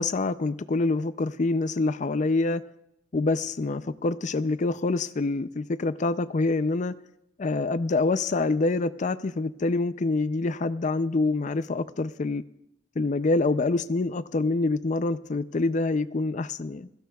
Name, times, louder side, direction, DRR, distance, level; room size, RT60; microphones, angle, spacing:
voice 1, 0.0-2.6 3.1-6.9 7.4-12.4 13.0-16.9, left 3 dB, 45° left, 0.5 m, -26 dB
29.0 x 16.5 x 2.4 m
head